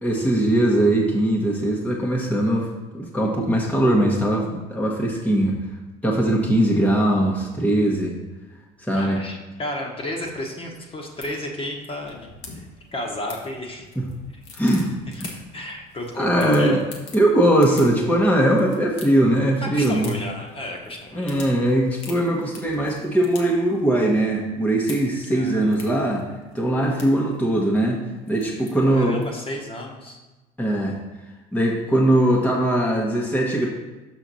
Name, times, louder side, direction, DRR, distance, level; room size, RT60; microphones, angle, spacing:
voice 1, 0.0-2.7 2.9-5.6 6.0-8.1 8.8-9.2 14.0-14.1 14.5-14.9 15.2-15.3 16.2-16.8 17.1-20.1 21.1-26.2 26.5-28.0 28.3-29.2 30.6-31.0 31.5-33.7, right 1 dB, 5° left, -3 dB, 1.1 m, -20 dB
voice 2, 8.9-13.9 15.5-16.8 19.6-21.4 25.3-25.8 28.9-30.2, left 1 dB, 30° left, 0 dB, 1.3 m, -32 dB
sound 1, 10.2-29.6, left 4 dB, 75° left, 1.4 m, -46 dB
6.2 x 5.6 x 4.1 m, 1.1 s
supercardioid pair, 90°, 19 cm